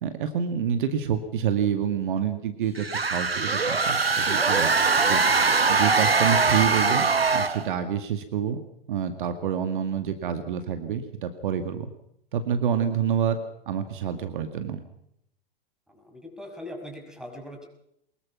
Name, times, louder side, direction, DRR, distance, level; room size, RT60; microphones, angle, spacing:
voice 1, 0.0-4.7 5.1-7.0 7.3-8.6 8.9-11.9 12.3-13.4 13.7-14.8, right 8 dB, 60° right, 8 dB, 2.1 m, -27 dB
sound 1, 2.8-7.7, right 4 dB, 90° right, 1.2 m, -22 dB
voice 2, 15.9-17.7, left 1 dB, ahead, 4 dB, 5.9 m, -41 dB
24.0 x 21.5 x 6.0 m, 0.75 s
figure-of-eight pair, 100°, 29 cm